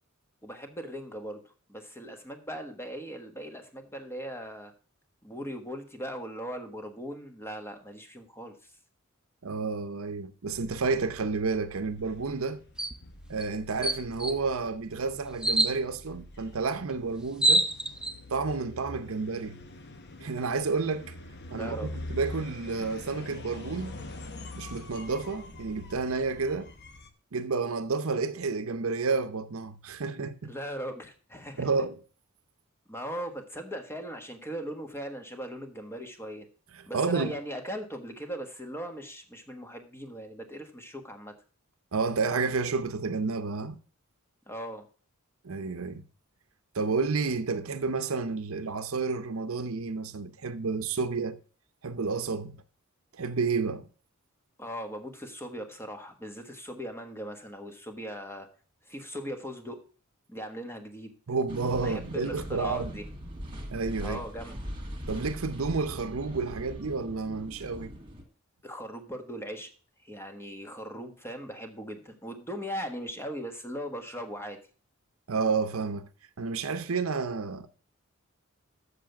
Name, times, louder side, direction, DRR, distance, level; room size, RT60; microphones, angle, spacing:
voice 1, 0.4-1.4 1.7-4.7 5.2-8.6 21.5-21.9 30.4-31.7 32.9-36.5 36.9-41.3 44.5-44.8 54.6-58.5 58.8-59.8 60.3-61.1 61.8-63.0 64.0-64.6 68.6-69.7 70.0-74.6, equal, 10° left, 1.3 m, -39 dB
voice 2, 9.4-12.6 13.3-17.7 18.3-19.6 20.2-21.1 21.5-24.0 24.5-26.7 27.3-30.5 31.6-32.0 36.7-37.4 41.9-43.8 45.4-46.0 46.7-51.4 51.8-52.6 53.1-53.9 61.3-62.9 63.7-64.2 65.1-67.9 75.3-76.1 76.4-77.7, right 4 dB, 70° right, 0.7 m, -30 dB
sound 1, 10.5-27.1, left 1 dB, 50° left, 1.0 m, -45 dB
sound 2, 12.8-13.0 13.4-13.5 13.8-14.4 15.4-15.7 16.9-17.0 17.2-18.1, right 2 dB, 5° right, 0.5 m, -25 dB
sound 3, 61.5-68.2, equal, 25° right, 2.0 m, -40 dB
7.4 x 6.7 x 5.8 m
head